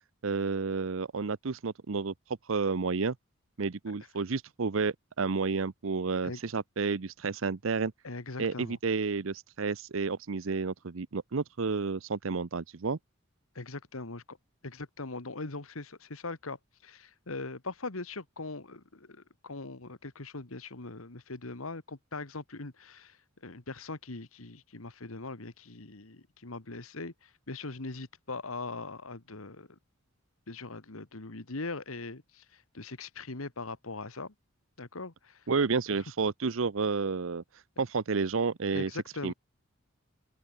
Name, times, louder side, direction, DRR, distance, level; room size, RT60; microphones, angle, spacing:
voice 1, 0.2-2.1 2.5-3.2 3.6-7.9 8.4-13.0 35.5-37.4 37.8-38.9 39.2-39.3, right 4 dB, 70° right, 0.7 m, -30 dB
voice 2, 8.0-8.8 13.6-14.4 14.6-29.8 30.5-34.3 34.8-35.5 36.0-36.1 38.7-39.3, left 3 dB, 80° left, 1.8 m, -41 dB
open air
head